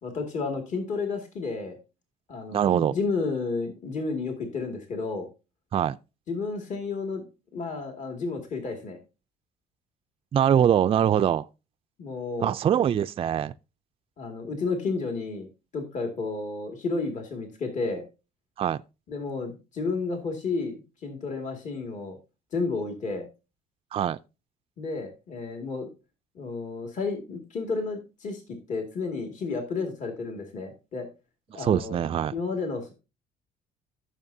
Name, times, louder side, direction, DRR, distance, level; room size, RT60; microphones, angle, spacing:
voice 1, 0.0-1.8 2.3-5.3 6.3-7.3 7.5-9.0 12.0-12.5 14.2-15.5 15.7-18.0 19.1-22.2 22.5-23.3 24.8-25.9 26.4-31.1 31.5-32.0 32.3-32.9, left 4 dB, 45° left, 2.2 m, -31 dB
voice 2, 2.5-3.0 5.7-6.0 10.3-11.5 12.4-13.5 18.6-18.8 23.9-24.2 31.6-32.3, right 9 dB, 35° right, 0.4 m, -23 dB
14.5 x 6.6 x 2.7 m
cardioid pair, 110°, 17 cm